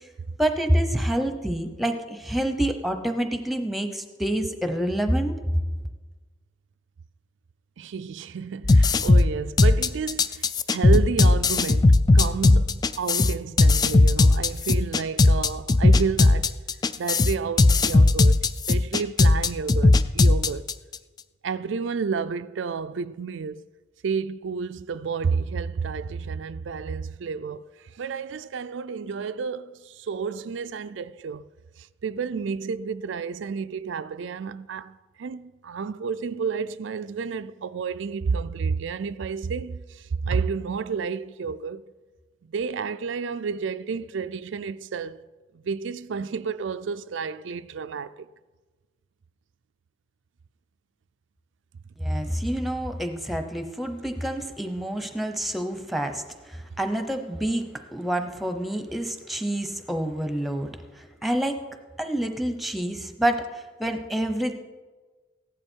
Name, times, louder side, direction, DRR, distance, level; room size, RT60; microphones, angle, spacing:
voice 1, 0.4-5.4 52.0-61.6 62.0-64.6, right 1 dB, ahead, 0.9 m, -27 dB
voice 2, 7.8-16.5 17.0-20.7 21.4-23.6 24.0-31.4 31.8-41.9 42.4-45.2 45.5-48.3, right 5 dB, 85° right, 0.4 m, -31 dB
sound 1, 8.6-21.0, left 2 dB, 20° left, 0.3 m, -18 dB
15.5 x 11.0 x 4.6 m
head